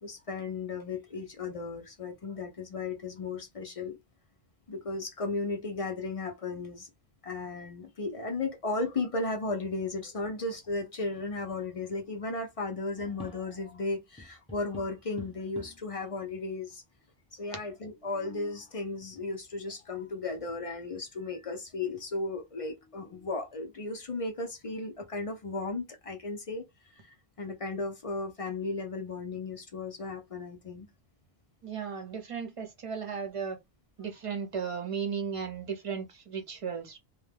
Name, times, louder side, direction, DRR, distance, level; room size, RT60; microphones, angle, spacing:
voice 1, 0.0-4.0 4.7-6.9 7.2-16.8 17.3-26.7 26.9-30.9, left 3 dB, 45° left, 0.5 m, -35 dB
sound 1, 13.0-13.8 14.2-16.0 16.7-16.8 17.0-17.1 17.8-18.7 20.5-20.6 21.1-21.5 22.0-22.1 22.6-23.5, equal, 5° left, 0.7 m, -50 dB
voice 2, 31.6-33.6 34.0-37.0, right 6 dB, 35° right, 0.7 m, -35 dB
2.2 x 2.1 x 3.3 m
omnidirectional pair, 1.0 m